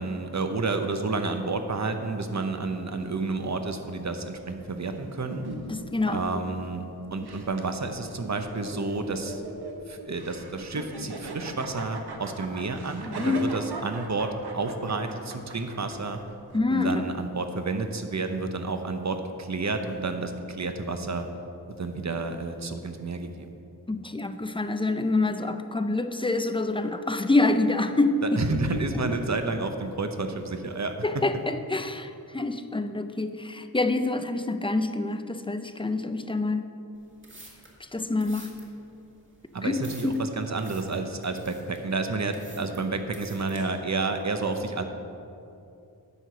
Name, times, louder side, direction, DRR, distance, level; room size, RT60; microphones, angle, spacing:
voice 1, 0.0-5.4 6.1-6.8 7.1-9.4 9.9-16.2 16.7-21.2 21.8-23.5 28.4-31.2 39.5-44.8, right 3 dB, 45° right, 7 dB, 0.8 m, -30 dB
sound 1, 3.0-16.6, right 2 dB, 85° right, 0.9 m, -41 dB
voice 2, 5.7-6.4 13.1-13.4 16.5-17.1 23.9-28.2 31.0-36.7 37.9-38.5 39.6-39.8 40.0-40.2, left 2 dB, 15° left, 9 dB, 0.5 m, -26 dB
sound 2, 37.0-43.6, right 1 dB, 30° right, 1.9 m, -50 dB
9.9 x 4.8 x 6.7 m, 2.7 s
wide cardioid pair, 60°, 38 cm